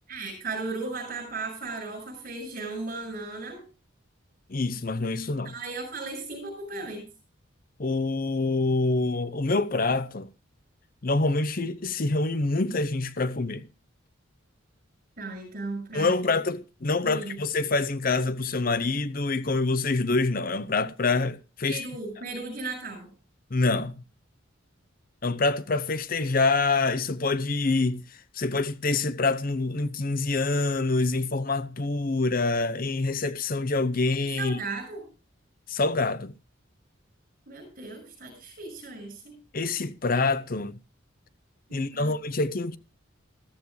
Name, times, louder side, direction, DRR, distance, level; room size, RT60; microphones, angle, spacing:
voice 1, 0.1-3.6 5.4-7.1 15.2-16.1 17.0-17.4 21.6-23.1 34.2-35.0 37.5-39.4 41.7-42.1, right 3 dB, 45° right, 6.4 m, -36 dB
voice 2, 4.5-5.5 7.8-10.3 11.0-13.6 15.9-21.8 23.5-23.9 25.2-28.0 28.3-34.6 35.7-36.3 39.5-40.8 41.7-42.8, left 3 dB, 45° left, 0.7 m, -26 dB
14.5 x 14.0 x 3.2 m
head